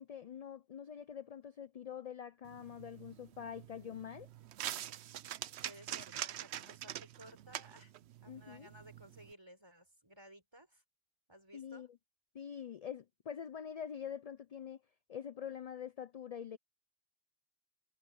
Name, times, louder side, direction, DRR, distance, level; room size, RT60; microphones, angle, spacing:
voice 1, 0.0-4.3 8.3-8.7 11.5-11.9 12.3-14.8 15.1-16.6, left 8 dB, 50° left, 0.5 m, -45 dB
sound 1, 2.5-9.3, right 12 dB, 80° right, 0.9 m, -45 dB
voice 2, 3.8-4.2 5.6-7.9 8.2-10.8 11.3-11.9, right 1 dB, 25° right, 4.4 m, -57 dB
omnidirectional pair, 1.1 m